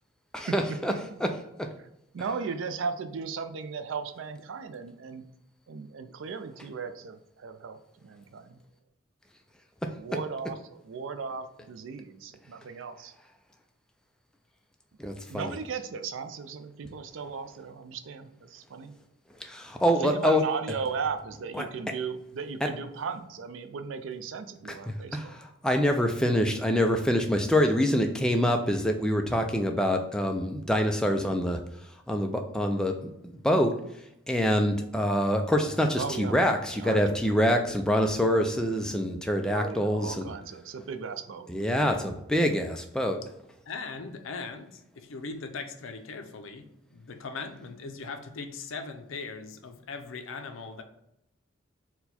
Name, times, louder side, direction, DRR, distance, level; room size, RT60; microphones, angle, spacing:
voice 1, 0.3-1.3 1.6-1.7 2.2-2.3 9.8-10.2 15.0-15.5 19.4-20.4 21.5-21.7 22.6-22.7 24.7-40.4 41.5-43.2, equal, 5° left, 0.3 m, -26 dB
voice 2, 2.1-5.3 5.7-8.6 10.0-13.1 15.3-18.9 20.0-25.3 36.0-36.4 36.7-37.0 39.5-41.5, right 5 dB, 75° right, 0.4 m, -36 dB
voice 3, 43.7-50.8, left 4 dB, 80° left, 0.5 m, -39 dB
4.4 x 2.2 x 4.1 m
head